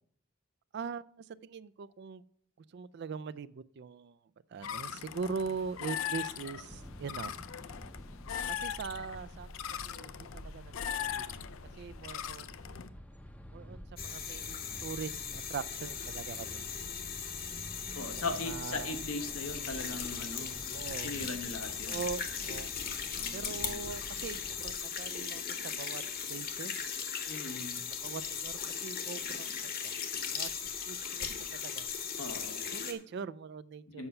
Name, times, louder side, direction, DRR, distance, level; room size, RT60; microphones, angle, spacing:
voice 1, 0.7-2.2 2.7-4.2 4.5-7.3 8.5-9.5 9.8-11.3 11.8-12.5 13.5-16.6 18.4-19.3 20.7-21.2 21.9-22.8 23.3-26.0 26.3-26.7 28.0-29.8 30.3-30.5 30.9-31.9 32.7-34.1, right 5 dB, 50° right, 18 dB, 0.3 m, -41 dB
sound 1, 4.6-12.9, left 9 dB, 70° left, 0.4 m, -40 dB
sound 2, 6.7-24.7, equal, 5° left, 0.6 m, -49 dB
sound 3, 14.0-32.9, left 7 dB, 45° left, 1.0 m, -38 dB
voice 2, 17.9-20.7 21.0-22.0 23.2-23.8 27.2-27.8 32.2-32.6 33.9-34.1, left 3 dB, 90° left, 6 dB, 1.2 m, -39 dB
7.1 x 5.6 x 6.7 m, 0.63 s
head